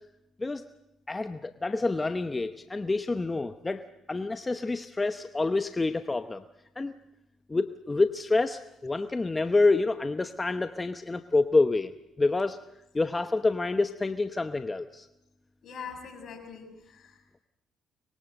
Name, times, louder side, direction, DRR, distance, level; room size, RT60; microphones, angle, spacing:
voice 1, 1.1-6.4 6.8-6.9 7.5-11.9 12.2-12.6 12.9-15.1, left 3 dB, 25° left, 10 dB, 0.9 m, -27 dB
voice 2, 15.6-17.4, left 6 dB, 60° left, 5 dB, 6.6 m, -43 dB
24.5 x 22.0 x 7.9 m, 0.85 s
supercardioid pair, 75°, 0 cm